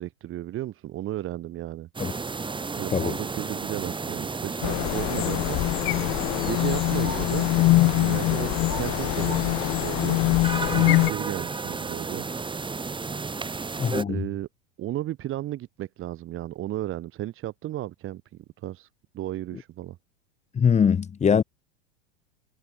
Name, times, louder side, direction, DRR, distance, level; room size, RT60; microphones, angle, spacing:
voice 1, 0.0-1.9 2.7-5.6 6.4-10.2 10.7-12.3 14.1-14.5 14.8-18.2 18.6-18.9 19.1-20.0, right 14 dB, 35° right, 3.1 m, -34 dB
sound 1, 1.9-14.0, right 4 dB, 15° right, 5.2 m, -33 dB
sound 2, 4.6-11.1, left 20 dB, 40° left, 1.2 m, -23 dB
voice 2, 13.8-14.2 20.5-21.4, left 7 dB, 20° left, 1.5 m, -22 dB
hypercardioid pair, 90°, 34 cm